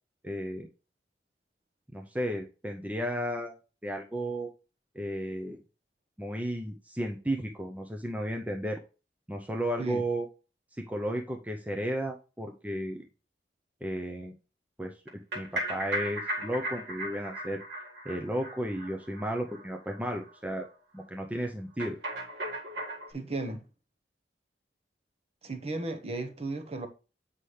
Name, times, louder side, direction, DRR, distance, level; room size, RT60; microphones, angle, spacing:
voice 1, 0.2-0.7 1.9-3.5 3.8-4.5 4.9-5.6 6.2-8.8 9.3-10.3 10.8-13.1 13.8-14.3 14.8-14.9 15.3-17.6 18.0-20.7 20.9-22.0, equal, 10° right, 0.7 m, -33 dB
sound 1, 15.1-19.6 19.9-20.0 20.3-20.4 20.6-20.7 21.8-23.1, right 1 dB, 75° right, 2.0 m, -36 dB
voice 2, 23.1-23.6 25.4-26.9, right 2 dB, 35° right, 1.0 m, -35 dB
8.2 x 5.6 x 3.2 m
head